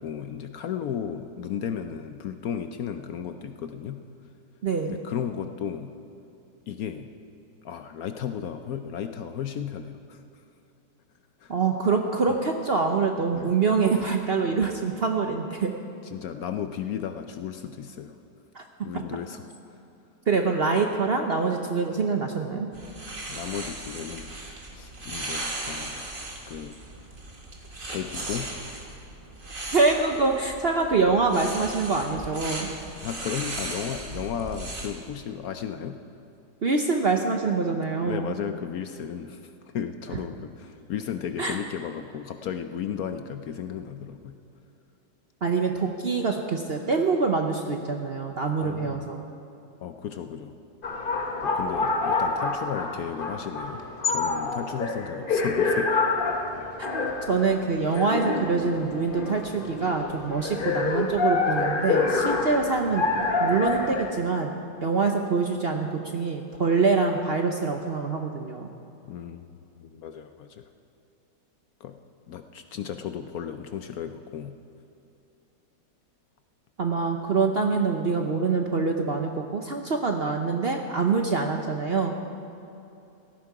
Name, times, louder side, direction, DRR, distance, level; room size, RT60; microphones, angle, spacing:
voice 1, 0.0-4.0 4.9-6.0 6.7-7.1 7.6-10.2 11.4-11.6 13.3-13.6 14.5-14.6 16.0-18.1 18.8-19.4 23.3-24.4 24.7-26.1 26.5-26.8 27.9-28.5 32.9-36.0 38.0-44.4 48.6-49.1 49.8-50.6 51.4-53.8 54.1-55.9 60.6-60.9 69.0-70.7 71.8-72.0 72.3-74.6, left 8 dB, 65° left, 8 dB, 1.0 m, -34 dB
voice 2, 4.6-5.0 11.5-15.7 18.5-18.6 18.9-19.0 20.3-22.7 29.7-32.7 36.6-38.3 41.4-41.6 45.4-49.3 57.3-63.0 63.4-64.6 64.8-68.7 76.8-82.2, right 4 dB, 50° right, 3 dB, 0.8 m, -25 dB
sound 1, 22.7-34.9, right 2 dB, 30° right, 1.7 m, -37 dB
sound 2, 50.8-64.1, left 3 dB, 35° left, 1.0 m, -27 dB
17.0 x 14.5 x 4.8 m, 2.8 s
omnidirectional pair, 1.9 m